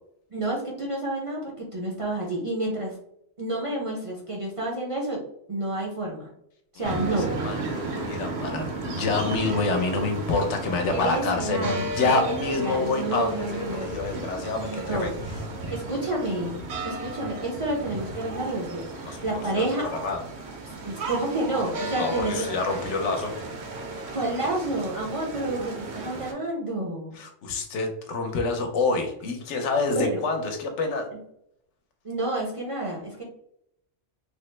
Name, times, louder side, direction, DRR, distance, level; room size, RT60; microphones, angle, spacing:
voice 1, 0.3-3.0 3.4-5.2 5.5-6.3 6.7-7.3 10.9-12.3 12.6-13.9 14.6-15.2 15.7-19.9 20.8-22.5 24.1-27.2 29.9-30.2 32.0-33.2, right 2 dB, 40° right, -3 dB, 0.4 m, -29 dB
voice 2, 6.8-15.1 19.0-20.2 21.9-23.3 27.1-31.1, left 3 dB, 75° left, 5 dB, 1.0 m, -27 dB
sound 1, 6.8-26.3, right 2 dB, 65° right, 0.9 m, -34 dB
3.4 x 2.0 x 3.1 m, 0.73 s
omnidirectional pair, 1.2 m